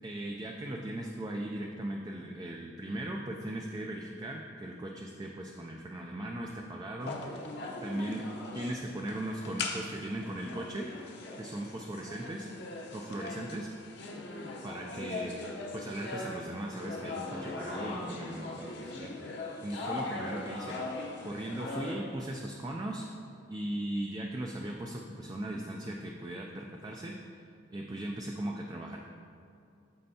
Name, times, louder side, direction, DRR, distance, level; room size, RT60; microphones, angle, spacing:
voice 1, 0.0-7.2 7.8-8.2 8.5-10.9 11.4-12.5 12.9-13.7 14.6-15.3 15.7-19.1 19.6-20.8 21.2-23.2 23.5-29.0, right 1 dB, 20° right, 0 dB, 0.3 m, -38 dB
sound 1, 7.0-22.0, left 2 dB, 55° left, 0.8 m, -40 dB
13.0 x 4.4 x 2.8 m, 2.6 s
head